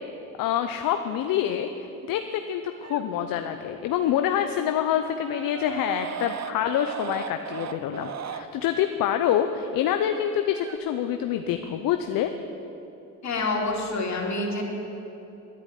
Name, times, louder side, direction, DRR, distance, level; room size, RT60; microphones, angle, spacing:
voice 1, 0.4-12.3, left 10 dB, 75° left, 7 dB, 0.8 m, -26 dB
sound 1, 2.8-3.0 5.1-8.4 10.3-10.8, right 8 dB, 50° right, 0.9 m, -37 dB
voice 2, 13.2-14.6, left 2 dB, 50° left, 0 dB, 3.2 m, -27 dB
11.0 x 10.5 x 9.2 m, 3.0 s
supercardioid pair, 70°, 34 cm